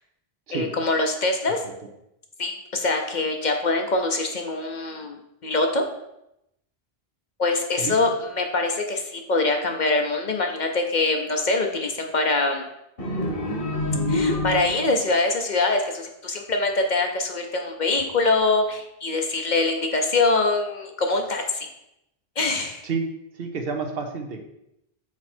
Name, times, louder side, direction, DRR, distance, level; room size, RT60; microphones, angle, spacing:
voice 1, 0.5-1.6 2.4-5.2 5.4-5.8 7.4-8.1 8.4-12.7 14.1-21.7 22.4-22.8, left 3 dB, 50° left, 4 dB, 0.8 m, -24 dB
sound 1, 13.0-15.0, left 1 dB, 65° left, 1.6 m, -26 dB
voice 2, 23.3-24.4, right 4 dB, 65° right, 4 dB, 1.0 m, -29 dB
6.1 x 4.4 x 4.3 m, 0.83 s
omnidirectional pair, 1.1 m